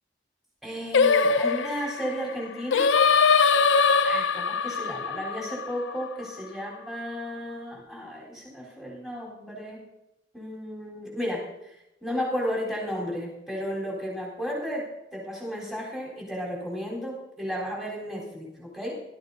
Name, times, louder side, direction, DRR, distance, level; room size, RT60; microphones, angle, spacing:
voice 1, 0.6-2.9 4.0-9.8 10.3-11.5 12.0-19.0, equal, ahead, -5 dB, 3.9 m, -33 dB
Singing, 0.9-6.2, left 5 dB, 90° left, 0.6 m, -22 dB
18.0 x 13.0 x 2.8 m, 0.85 s
head